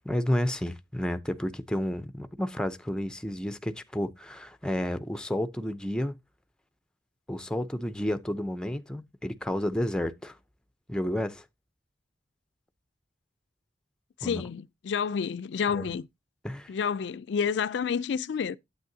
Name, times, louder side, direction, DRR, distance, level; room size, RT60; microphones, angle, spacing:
voice 1, 0.0-6.2 7.3-10.4 10.9-11.4 14.2-14.4 15.7-15.9 16.4-16.7, equal, 5° left, 0.5 m, -31 dB
voice 2, 14.2-16.0 16.7-18.6, left 6 dB, 65° left, 0.4 m, -29 dB
9.3 x 8.2 x 2.7 m
head